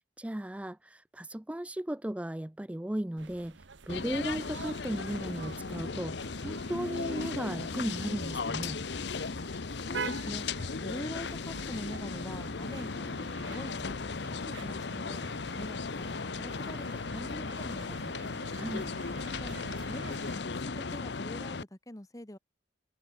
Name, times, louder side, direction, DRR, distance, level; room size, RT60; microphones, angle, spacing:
voice 1, 0.0-8.8 18.4-18.9, right 1 dB, 5° right, 0.4 m, -36 dB
sound 1, 3.2-20.4, right 4 dB, 75° right, 1.1 m, -47 dB
sound 2, 3.9-21.6, left 4 dB, 65° left, 0.8 m, -36 dB
voice 2, 9.9-10.5 10.8-15.2 15.6-18.0 19.2-19.6 19.9-22.4, left 1 dB, 20° left, 1.3 m, -44 dB
head